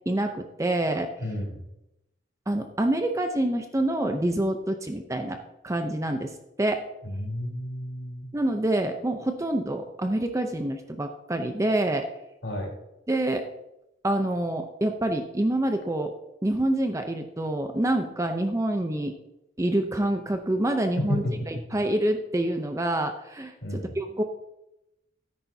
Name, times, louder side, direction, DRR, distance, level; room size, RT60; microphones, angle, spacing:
voice 1, 0.1-1.1 2.5-6.8 8.3-12.1 13.1-13.5 14.0-16.1 16.4-19.1 19.6-24.2, right 1 dB, 15° right, 6 dB, 0.6 m, -27 dB
voice 2, 1.2-1.7 7.0-8.3 12.4-12.7 21.0-21.6 23.6-23.9, left 1 dB, 70° left, -1 dB, 3.6 m, -31 dB
13.0 x 10.5 x 2.7 m, 0.90 s
head